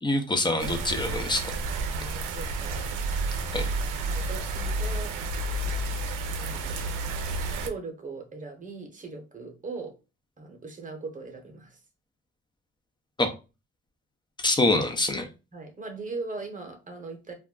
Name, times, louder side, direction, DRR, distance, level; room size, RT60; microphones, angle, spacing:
voice 1, 0.0-1.4 3.5-3.7 13.2-13.3 14.4-15.3, left 2 dB, 15° left, 7 dB, 0.5 m, -25 dB
sound 1, 0.6-7.7, right 2 dB, 85° right, 0.5 m, -30 dB
voice 2, 1.9-2.8 4.1-5.1 6.3-7.0 7.6-9.9 10.4-11.8 15.5-17.3, right 3 dB, 25° right, 3 dB, 0.9 m, -39 dB
2.4 x 2.1 x 3.6 m, 0.30 s
cardioid pair, 90°, 30 cm